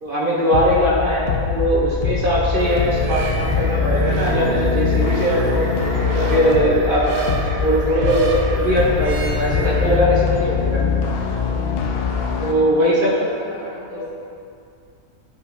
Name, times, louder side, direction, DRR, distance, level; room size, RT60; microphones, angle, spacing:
voice 1, 0.0-5.7 6.1-10.8 12.4-13.3 13.9-14.1, equal, 50° right, -5 dB, 0.7 m, -20 dB
sound 1, 0.5-12.5, left 6 dB, 75° left, 0.5 m, -23 dB
voice 2, 0.9-1.2 12.9-14.1, left 1 dB, 20° left, -11 dB, 1.1 m, -37 dB
sound 2, 2.6-10.0, right 1 dB, 75° right, 1.1 m, -27 dB
8.3 x 4.9 x 2.5 m, 2.4 s
omnidirectional pair, 1.6 m